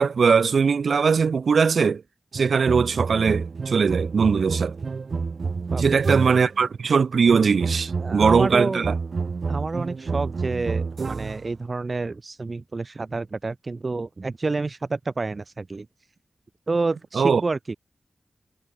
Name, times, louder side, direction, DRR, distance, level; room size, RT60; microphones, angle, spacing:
voice 1, 0.0-2.0 2.3-4.8 5.8-8.9 17.1-17.4, right 5 dB, 90° right, 0.7 m, -20 dB
sound 1, 2.3-6.6 7.3-11.5, right 4 dB, 60° right, 4.2 m, -29 dB
voice 2, 5.7-6.4 8.0-8.8 9.5-15.9 16.7-17.8, right 3 dB, 40° right, 1.1 m, -29 dB
wide cardioid pair, 120°, 0 cm